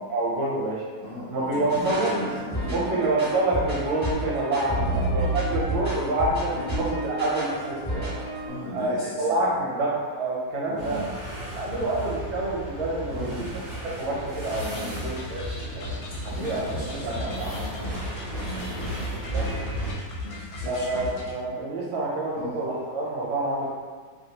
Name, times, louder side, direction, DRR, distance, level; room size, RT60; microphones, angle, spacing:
voice 1, 0.0-0.8 1.3-2.1 2.7-8.1 8.7-11.1 11.5-13.3 14.0-15.4 15.7-16.0 16.2-17.5 19.3-19.4 20.7-23.7, right 2 dB, 70° right, -5 dB, 1.3 m, -27 dB
voice 2, 1.0-3.0 4.7-5.1 6.5-6.8 8.5-9.6 10.7-11.1 13.1-13.5 14.7-15.0 16.2-18.0 18.4-18.9 20.2-21.1 22.4-22.6, left 1 dB, 65° left, -12 dB, 0.9 m, -37 dB
sound 1, 1.7-8.5, right 1 dB, 10° left, 0.6 m, -30 dB
sound 2, 10.8-19.9, right 1 dB, 45° right, 0.8 m, -35 dB
sound 3, 14.5-21.4, left 2 dB, 85° left, 1.5 m, -37 dB
3.2 x 2.5 x 2.8 m, 1.5 s
omnidirectional pair, 2.4 m